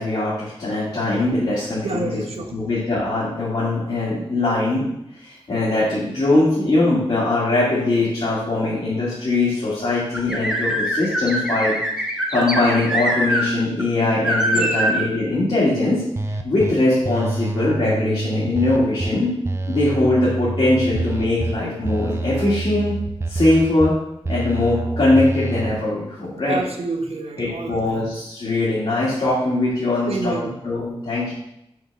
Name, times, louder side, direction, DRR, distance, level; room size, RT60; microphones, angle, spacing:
voice 1, 0.0-2.2 2.5-4.9 5.2-11.7 12.3-16.0 16.4-19.3 19.7-23.0 23.3-23.9 24.3-26.6 27.4-30.3 30.6-31.3, left 2 dB, 65° left, -9 dB, 2.2 m, -21 dB
voice 2, 1.8-2.5 14.5-14.7 26.5-28.1 30.1-30.6, right 2 dB, 80° right, 3 dB, 0.9 m, -28 dB
sound 1, 10.1-13.4 13.8-13.9 14.2-15.0, equal, 5° right, 1.0 m, -23 dB
sound 2, 16.2-16.7 17.0-19.1 19.4-21.5 21.8-23.9 24.2-25.7, right 2 dB, 25° right, 0.5 m, -26 dB
6.3 x 5.5 x 3.5 m, 0.79 s
wide cardioid pair, 100°, 10 cm